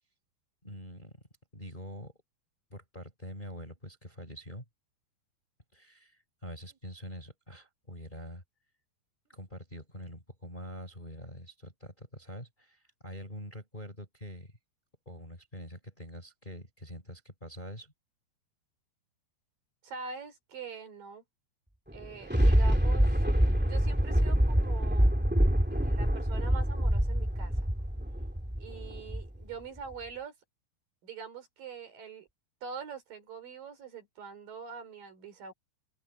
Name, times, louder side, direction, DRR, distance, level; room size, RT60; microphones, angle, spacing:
voice 1, 0.6-1.2 1.5-2.1 2.7-4.6 5.7-8.4 9.3-14.6 15.1-17.9, equal, 10° left, 4.0 m, -45 dB
voice 2, 19.8-21.2 21.9-23.2 23.7-25.1 25.7-27.6 28.6-30.3 31.0-32.3 32.6-35.5, right 5 dB, 50° right, 5.1 m, -44 dB
Thunder, 21.9-29.4 29.9-30.0, equal, 15° right, 0.3 m, -26 dB
open air
omnidirectional pair, 5.2 m